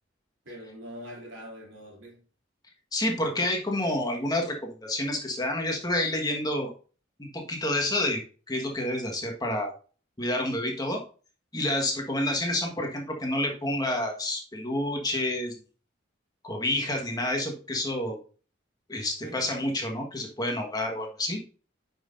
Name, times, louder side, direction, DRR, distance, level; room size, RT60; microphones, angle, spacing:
voice 1, 0.4-2.2 19.2-19.5, equal, 80° right, 3.2 m, -43 dB
voice 2, 2.9-6.7 7.2-8.2 8.5-9.7 10.2-11.0 11.5-15.5 16.4-18.2 18.9-21.4, left 1 dB, 20° left, 1.4 m, -29 dB
9.1 x 5.7 x 2.6 m
head